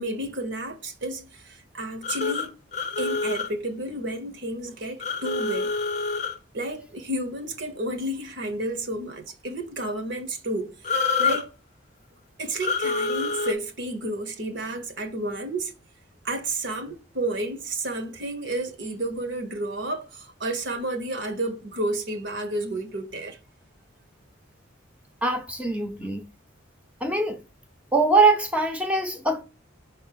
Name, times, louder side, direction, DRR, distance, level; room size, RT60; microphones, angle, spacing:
voice 1, 0.0-2.5 3.0-5.7 6.5-11.5 12.4-15.7 16.2-23.4, right 1 dB, 60° right, 0.9 m, -31 dB
sound 1, 2.0-3.5 5.0-6.4 10.8-11.4 12.6-13.5, left 4 dB, 35° left, 0.6 m, -26 dB
voice 2, 25.2-26.2 27.0-27.4 27.9-29.4, right 3 dB, 5° right, 0.7 m, -22 dB
5.3 x 3.5 x 5.7 m
head